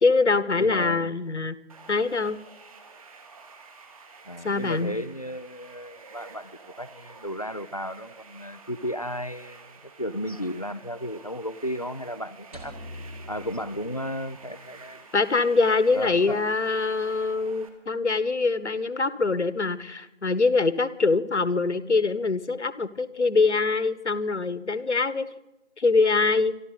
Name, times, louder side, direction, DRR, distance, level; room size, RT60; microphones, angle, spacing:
voice 1, 0.0-1.6 1.9-2.4 4.4-5.0 15.1-25.3 25.8-26.5, left 3 dB, 70° left, 15 dB, 1.4 m, -24 dB
voice 2, 0.6-1.1 4.2-9.7 10.0-12.8 13.3-15.1 15.9-16.4, equal, 30° left, 16 dB, 0.5 m, -34 dB
sound 1, 1.7-17.7, right 4 dB, 30° right, 2.1 m, -49 dB
sound 2, 12.5-14.8, left 1 dB, 10° right, 1.2 m, -44 dB
26.5 x 12.0 x 4.1 m, 0.92 s
figure-of-eight pair, 155°, 36 cm